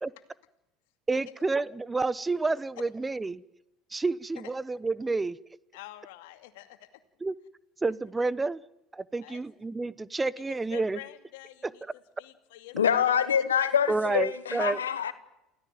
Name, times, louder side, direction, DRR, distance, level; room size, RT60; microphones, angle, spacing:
voice 1, 1.1-3.4 3.9-5.4 7.2-7.3 7.8-8.6 8.9-11.0 11.6-11.7 13.9-14.8, right 3 dB, 15° right, 19 dB, 0.9 m, -29 dB
voice 2, 5.7-6.9 9.2-9.4 10.5-11.8 12.2-13.2, left 15 dB, 75° left, 9 dB, 2.4 m, -46 dB
voice 3, 12.7-15.1, left 8 dB, 90° left, 13 dB, 1.3 m, -25 dB
28.5 x 16.5 x 9.2 m, 0.92 s
hypercardioid pair, 75°, 0 cm